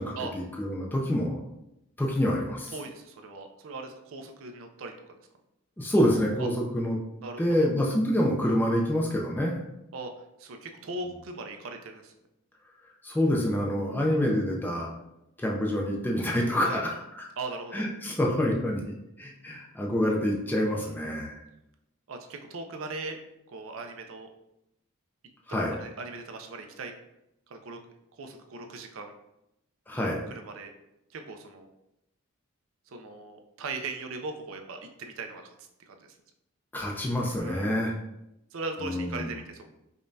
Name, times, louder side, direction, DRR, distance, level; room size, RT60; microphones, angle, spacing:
voice 1, 0.0-1.4 2.0-2.7 5.8-7.0 7.4-9.6 13.0-14.9 15.4-17.2 17.7-21.4 25.5-25.8 29.9-30.2 36.7-37.9 38.8-39.3, equal, 10° left, -2 dB, 0.4 m, -27 dB
voice 2, 2.7-5.1 6.4-6.5 7.2-7.7 9.9-10.1 10.4-12.1 16.6-16.8 17.4-17.9 20.7-20.9 22.1-23.2 23.5-24.3 25.8-26.9 27.5-27.8 28.2-29.1 30.3-30.7 31.1-31.7 32.9-36.0 37.4-37.8 38.5-39.7, right 3 dB, 65° right, 5 dB, 0.4 m, -39 dB
5.0 x 2.2 x 2.6 m, 0.86 s
head